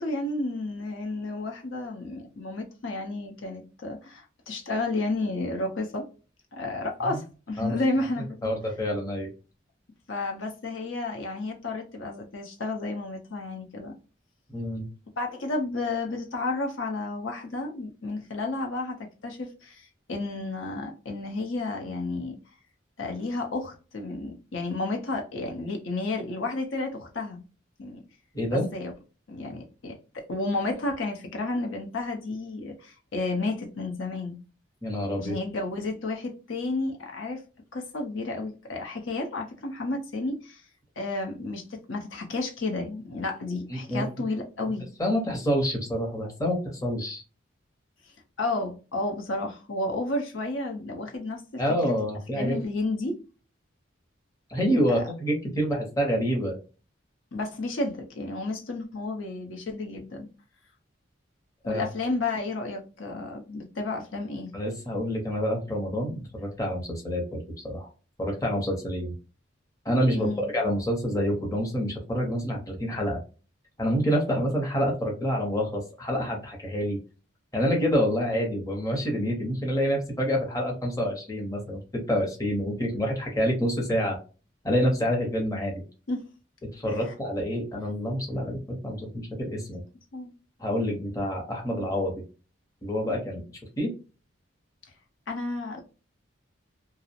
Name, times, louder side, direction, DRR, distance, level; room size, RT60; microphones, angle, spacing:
voice 1, 0.0-6.1 6.5-8.5 10.1-13.9 15.2-22.4 23.0-27.4 27.8-28.0 28.5-28.9 29.3-30.0 30.3-34.4 35.2-37.4 37.7-40.6 41.0-44.9 48.4-51.9 52.3-53.2 54.9-55.0 57.3-60.3 61.6-64.5 70.1-70.5 86.1-86.2 86.9-87.1 90.1-90.3 95.3-95.8, left 2 dB, 75° left, 0.7 m, -32 dB
voice 2, 8.4-9.3 14.5-14.9 28.3-28.7 34.8-35.4 43.7-44.0 45.0-47.2 51.6-52.6 54.5-56.6 61.7-61.8 64.5-67.9 68.2-69.1 69.8-73.2 73.8-77.0 77.5-81.8 82.1-84.2 84.6-85.8 86.7-89.8 90.6-92.2 92.8-93.4 93.8-93.9, equal, 15° left, 0.6 m, -27 dB
2.4 x 2.0 x 2.7 m
head